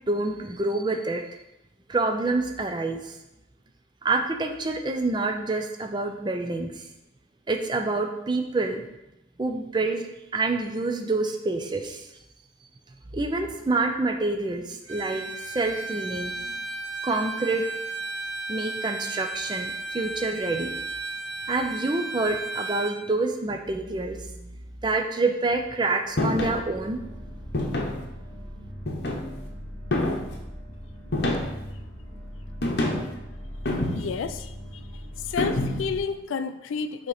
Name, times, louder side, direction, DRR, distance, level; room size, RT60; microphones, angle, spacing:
voice 1, 0.1-1.2 1.9-3.2 4.0-6.8 7.5-8.9 9.4-10.0 10.3-12.1 13.1-16.5 17.0-17.7 18.5-20.7 21.5-24.5 24.8-27.0, right 3 dB, 25° right, 5 dB, 0.4 m, -27 dB
Bowed string instrument, 14.9-23.0, right 2 dB, 85° right, 0.8 m, -34 dB
sound 1, 26.2-26.6 27.5-28.0 28.9-29.4 29.9-30.4 31.1-31.7 32.6-33.1 33.6-34.3 35.4-36.0, left 1 dB, 55° left, 0.8 m, -27 dB
sound 2, 26.3-36.0, equal, 5° left, 2.0 m, -40 dB
voice 2, 33.9-34.5 35.2-37.1, left 5 dB, 85° left, 11 dB, 0.3 m, -30 dB
6.5 x 3.0 x 4.8 m, 0.93 s
head